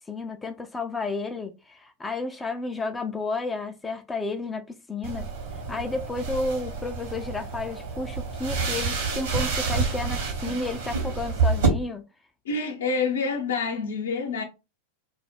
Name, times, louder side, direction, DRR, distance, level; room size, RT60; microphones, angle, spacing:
voice 1, 0.1-5.3 5.7-12.0, left 3 dB, 10° left, 0.3 m, -32 dB
sound 1, 5.0-11.7, right 4 dB, 60° right, 0.9 m, -28 dB
voice 2, 12.5-14.4, left 4 dB, 65° left, 0.6 m, -27 dB
2.3 x 2.0 x 3.3 m
figure-of-eight pair, 90°, 0 cm